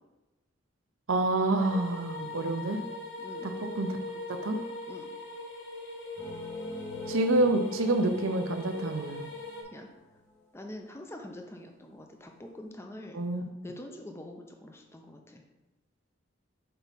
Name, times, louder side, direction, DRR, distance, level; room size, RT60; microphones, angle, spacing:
voice 1, 1.1-2.8 3.4-4.0 4.3-4.6 7.1-9.2 13.1-13.5, right 2 dB, 90° right, 6 dB, 0.7 m, -28 dB
sound 1, 1.6-9.6, left 2 dB, 65° left, 1.3 m, -40 dB
voice 2, 3.2-3.5 4.9-5.1 9.7-9.9 10.5-13.2 13.6-15.4, left 1 dB, 15° left, 3 dB, 0.5 m, -45 dB
sound 2, 6.2-10.1, left 2 dB, 35° left, 1.7 m, -44 dB
5.6 x 4.6 x 4.1 m, 1.1 s
head